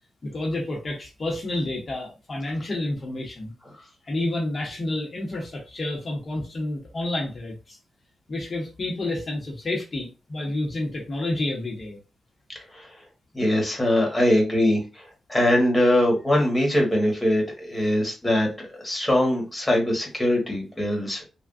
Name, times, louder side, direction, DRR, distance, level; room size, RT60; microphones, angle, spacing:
voice 1, 0.2-3.5 4.1-7.8 8.3-12.0, left 2 dB, 45° left, -2 dB, 0.9 m, -29 dB
voice 2, 12.5-12.9 13.3-21.2, left 1 dB, 5° left, -1 dB, 1.3 m, -22 dB
3.4 x 2.2 x 2.5 m, 0.30 s
cardioid pair, 85°, 0 cm